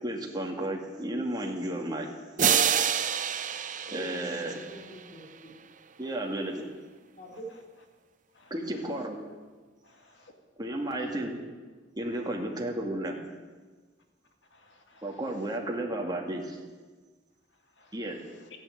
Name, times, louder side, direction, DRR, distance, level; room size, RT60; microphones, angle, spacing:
voice 1, 0.0-2.1 3.9-4.6 6.0-6.6 8.5-9.2 10.6-11.4 12.0-13.2 15.0-16.6 17.9-18.2, right 1 dB, 20° right, 0 dB, 2.3 m, -33 dB
voice 2, 2.4-2.9 3.8-5.5 7.1-7.5, right 1 dB, 45° left, -2 dB, 3.2 m, -45 dB
sound 1, 2.4-5.1, right 8 dB, 45° right, 0.7 m, -27 dB
voice 3, 9.8-10.3 10.9-11.1 12.1-12.2 14.5-15.2 17.8-18.5, left 2 dB, 75° left, 3 dB, 2.3 m, -60 dB
14.5 x 10.5 x 9.2 m, 1.4 s
head